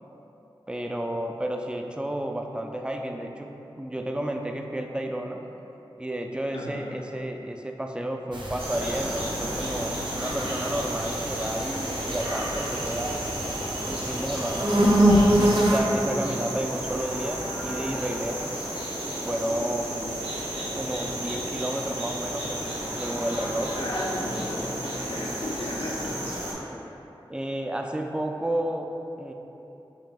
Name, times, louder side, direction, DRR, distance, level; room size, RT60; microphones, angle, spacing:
voice 1, 0.7-5.4 6.0-13.2 13.8-14.8 15.3-18.5 19.1-20.0 20.7-23.7 27.3-29.3, right 1 dB, 10° right, 3 dB, 0.3 m, -31 dB
voice 2, 6.5-7.0 16.1-16.6 20.0-20.2 23.7-26.1, left 1 dB, 70° left, -4 dB, 0.6 m, -35 dB
sound 1, 8.3-15.8, equal, 55° right, 0.6 m, -25 dB
sound 2, 8.6-26.5, right 1 dB, 75° right, 1.1 m, -33 dB
7.1 x 2.6 x 2.2 m, 3.0 s
wide cardioid pair, 45°, 9 cm